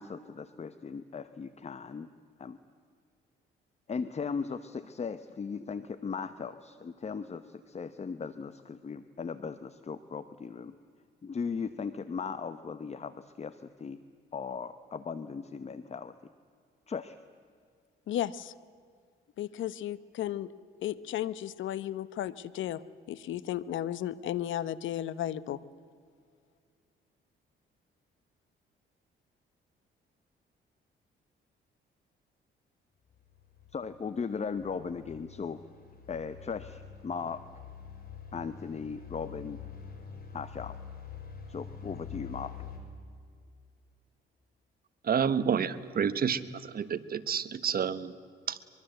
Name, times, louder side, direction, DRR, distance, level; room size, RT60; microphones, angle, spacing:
voice 1, 0.0-2.1 2.4-2.6 3.9-10.7 11.2-14.0 14.3-16.1 16.9-17.2 33.7-35.6 36.1-37.4 38.3-39.6 40.3-40.8 41.5-42.5, left 5 dB, 35° left, 12 dB, 1.0 m, -37 dB
voice 2, 18.1-18.5 19.4-20.5 20.8-22.8 23.1-25.6, left 12 dB, 75° left, 17 dB, 1.0 m, -34 dB
sound 1, 33.1-42.8, left 7 dB, 50° left, 5.2 m, -46 dB
voice 3, 45.0-48.1 48.5-48.6, right 7 dB, 50° right, 14 dB, 1.3 m, -29 dB
23.5 x 23.5 x 8.0 m, 2.2 s
cardioid pair, 90°, 20 cm